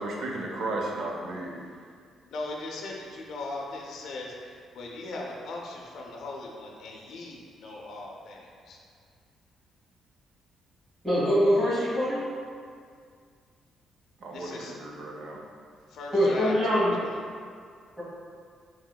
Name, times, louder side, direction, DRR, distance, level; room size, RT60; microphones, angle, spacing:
voice 1, 0.0-1.6 14.2-15.4, right 2 dB, 70° right, -1 dB, 0.5 m, -34 dB
voice 2, 2.2-8.8 14.3-14.8 15.9-17.2, left 2 dB, 75° left, -1 dB, 0.4 m, -39 dB
voice 3, 11.0-12.2 16.1-16.9 18.0-18.1, equal, 20° right, -13 dB, 1.3 m, -23 dB
3.0 x 2.8 x 2.2 m, 2.1 s
cardioid pair, 90°, 0 cm